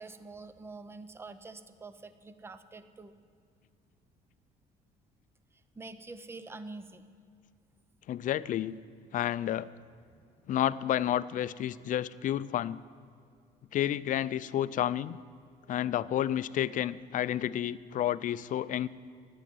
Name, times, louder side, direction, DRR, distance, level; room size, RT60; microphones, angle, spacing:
voice 1, 0.0-3.1 5.8-7.1, right 3 dB, 15° right, 11 dB, 0.6 m, -46 dB
voice 2, 8.1-8.7 9.1-9.7 10.5-12.8 13.7-15.2 15.7-18.9, left 11 dB, 50° left, 16 dB, 0.4 m, -30 dB
11.5 x 8.9 x 7.7 m, 2.3 s
cardioid pair, 110°, 17 cm